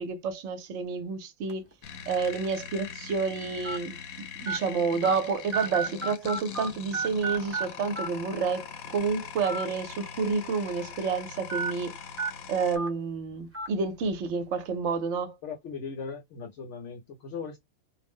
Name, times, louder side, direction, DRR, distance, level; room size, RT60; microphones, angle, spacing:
voice 1, 0.0-1.6 2.1-4.0 4.4-12.0 12.5-15.3, right 5 dB, 65° right, 0.9 m, -29 dB
sound 1, 1.5-1.7 2.4-2.5 3.6-3.8 4.5-4.6 5.0-5.1 5.5-6.7 6.9-7.6 8.0-8.1 9.4-9.6 10.0-10.1 11.5-11.7 12.2-12.3 12.8-12.9 13.5-13.7, right 3 dB, 15° right, 0.5 m, -31 dB
sound 2, 1.8-12.8, left 7 dB, 90° left, 1.0 m, -42 dB
voice 2, 15.4-17.6, left 5 dB, 65° left, 0.9 m, -38 dB
2.5 x 2.0 x 3.4 m
omnidirectional pair, 1.4 m